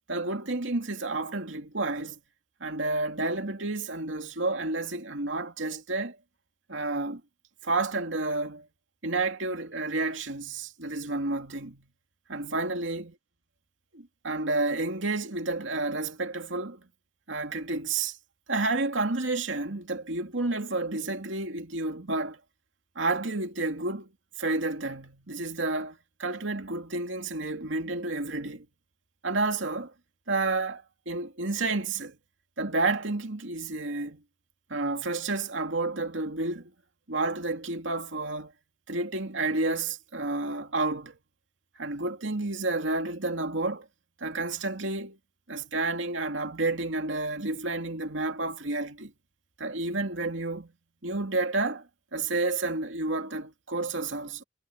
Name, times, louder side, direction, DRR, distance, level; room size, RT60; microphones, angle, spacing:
voice 1, 0.1-2.2 2.6-6.2 6.7-7.2 7.6-8.7 9.0-11.9 12.3-13.1 13.9-16.8 17.3-18.2 18.5-22.4 23.0-24.1 24.4-28.7 29.2-29.9 30.3-32.2 32.6-34.2 34.7-36.7 37.1-38.5 38.9-41.2 41.8-43.9 44.2-45.2 45.5-49.1 49.6-50.7 51.0-54.4, right 2 dB, 85° right, 2.6 m, -30 dB
head